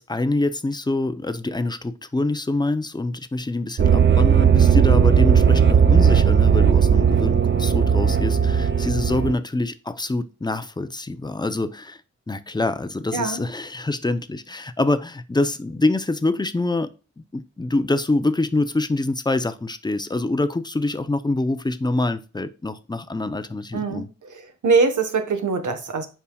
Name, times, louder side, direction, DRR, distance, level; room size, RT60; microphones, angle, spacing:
voice 1, 0.0-12.0 12.3-16.9 17.3-24.1, left 2 dB, 15° left, 0.6 m, -25 dB
sound 1, 3.8-9.3, right 7 dB, 40° right, 0.5 m, -16 dB
voice 2, 23.7-26.1, right 4 dB, 85° right, 1.3 m, -23 dB
8.4 x 5.6 x 2.3 m
wide cardioid pair, 145°, 29 cm